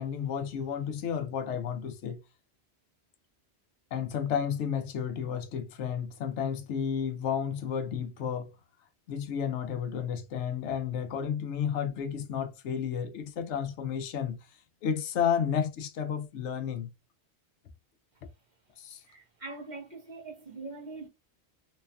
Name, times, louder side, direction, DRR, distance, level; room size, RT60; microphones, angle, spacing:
voice 1, 0.0-2.2 3.9-8.5 9.1-14.4 14.8-16.9 18.8-19.0, left 8 dB, 90° left, 0.9 m, -32 dB
voice 2, 18.9-21.1, right 3 dB, 40° right, 1.1 m, -43 dB
3.1 x 2.4 x 2.2 m
omnidirectional pair, 1.1 m